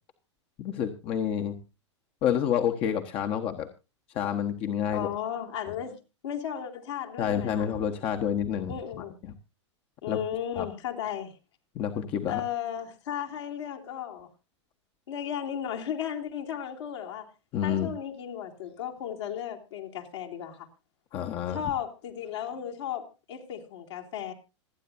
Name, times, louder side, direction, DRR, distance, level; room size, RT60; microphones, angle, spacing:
voice 1, 0.6-1.6 2.2-3.7 4.1-5.1 7.2-9.0 10.1-10.2 10.6-10.7 11.7-12.4 17.5-17.9 21.1-21.6, left 9 dB, 40° left, 1.3 m, -28 dB
voice 2, 4.9-7.7 8.7-9.2 10.0-11.3 12.3-14.3 15.1-17.3 17.6-20.7 21.5-24.3, left 9 dB, 65° left, 3.0 m, -35 dB
26.5 x 9.4 x 2.6 m
figure-of-eight pair, 100°, 15 cm